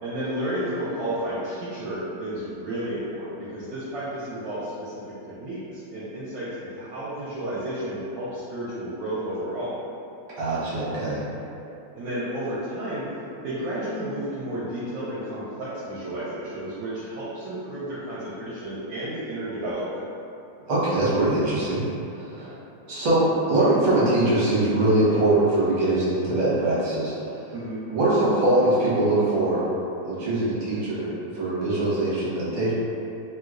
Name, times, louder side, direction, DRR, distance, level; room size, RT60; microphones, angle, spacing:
voice 1, 0.0-9.7 12.0-13.1 13.4-20.0 22.4-22.5 27.5-27.8, right 1 dB, 75° right, -10 dB, 1.2 m, -32 dB
voice 2, 10.3-11.2 20.7-21.8 22.2-22.4 22.9-27.1 27.9-29.6 30.0-31.1 31.3-32.7, right 2 dB, 50° right, -9 dB, 1.0 m, -22 dB
3.0 x 3.0 x 2.4 m, 2.8 s
omnidirectional pair, 2.2 m